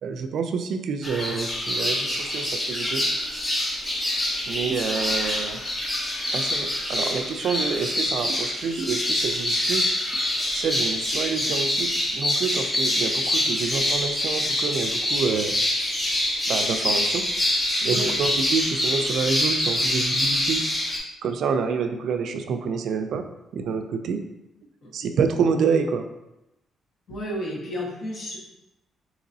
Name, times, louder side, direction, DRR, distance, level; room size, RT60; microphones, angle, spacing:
voice 1, 0.0-3.0 4.5-5.6 6.3-9.9 10.5-15.5 16.5-17.2 17.8-20.6 21.2-23.3 23.5-24.2 24.9-26.1, right 5 dB, 70° right, 7 dB, 0.3 m, -27 dB
sound 1, 1.0-21.0, left 1 dB, 20° left, 0.8 m, -25 dB
voice 2, 17.8-18.1 24.8-24.9 27.1-28.4, equal, 60° left, -4 dB, 1.4 m, -32 dB
3.9 x 2.9 x 2.6 m, 0.91 s
cardioid pair, 90°, 0 cm